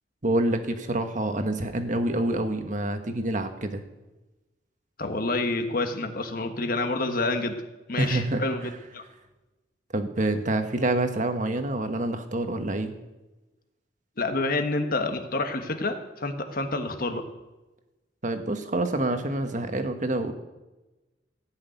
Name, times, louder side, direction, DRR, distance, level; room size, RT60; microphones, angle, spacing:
voice 1, 0.2-3.8 8.0-8.4 9.9-12.9 18.2-20.3, right 1 dB, 45° right, 7 dB, 1.3 m, -27 dB
voice 2, 5.0-7.6 7.9-9.0 14.2-17.2, left 2 dB, 50° left, 6 dB, 1.4 m, -28 dB
15.5 x 6.4 x 9.3 m, 1.1 s
head